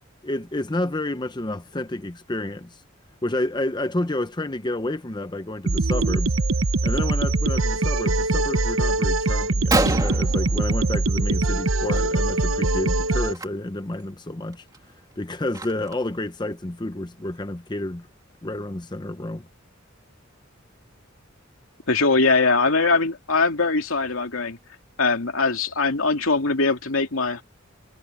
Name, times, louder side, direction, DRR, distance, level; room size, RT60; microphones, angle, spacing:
voice 1, 0.2-2.8 3.2-6.3 6.8-14.6 15.2-18.1 18.4-19.5, left 1 dB, 20° left, 0.8 m, -30 dB
sound 1, 5.7-13.3, right 2 dB, 80° right, 0.9 m, -22 dB
Gunshot gunfire, 9.7-11.3 11.6-12.0 12.2-12.5 13.3-13.5 14.0-14.1 14.5-16.1, right 2 dB, 20° right, 2.6 m, -28 dB
voice 2, 21.9-24.6 25.0-27.4, left 3 dB, 85° left, 2.7 m, -21 dB
head